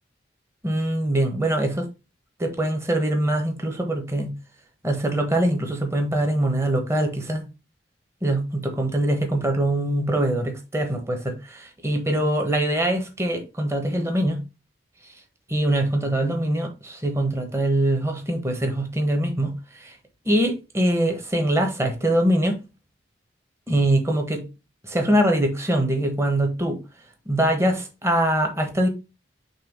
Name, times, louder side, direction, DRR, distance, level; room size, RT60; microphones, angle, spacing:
voice 1, 0.6-1.9 2.4-4.4 4.8-7.5 8.2-14.4 15.5-20.0 20.2-22.6 23.7-24.5 24.8-26.8 27.3-28.9, right 1 dB, 15° right, 1.2 m, -23 dB
5.5 x 3.4 x 5.3 m
head